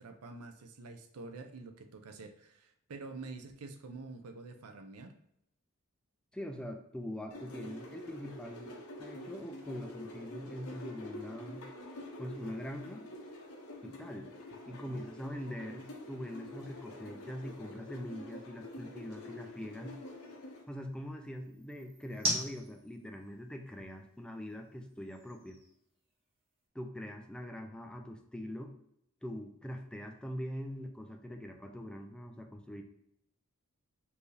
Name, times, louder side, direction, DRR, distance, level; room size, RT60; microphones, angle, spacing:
voice 1, 0.0-5.1 14.7-14.8, right 3 dB, 85° right, 7 dB, 0.6 m, -47 dB
voice 2, 6.3-11.6 12.2-13.1 13.8-14.3 14.7-20.0 20.7-25.6 26.7-28.7 29.2-32.8, equal, 5° left, 4 dB, 0.3 m, -43 dB
sound 1, 7.3-20.6, left 1 dB, 80° left, 0.8 m, -47 dB
sound 2, 12.4-26.7, right 1 dB, 25° right, 1.0 m, -46 dB
4.5 x 2.6 x 3.2 m, 0.75 s
head